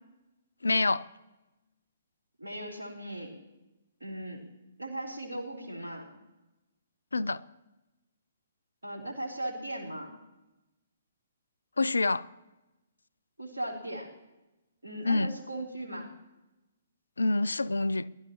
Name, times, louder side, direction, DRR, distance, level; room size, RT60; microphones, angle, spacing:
voice 1, 0.6-1.0 7.1-7.4 11.8-12.2 15.0-15.3 17.2-18.1, left 3 dB, 80° left, 0.5 m, -26 dB
voice 2, 2.4-3.3 4.0-4.4 4.8-6.0 8.8-10.2 13.4-14.1 14.8-16.1, right 1 dB, 80° right, 3.7 m, -38 dB
20.5 x 12.5 x 3.0 m
figure-of-eight pair, 130°, 0 cm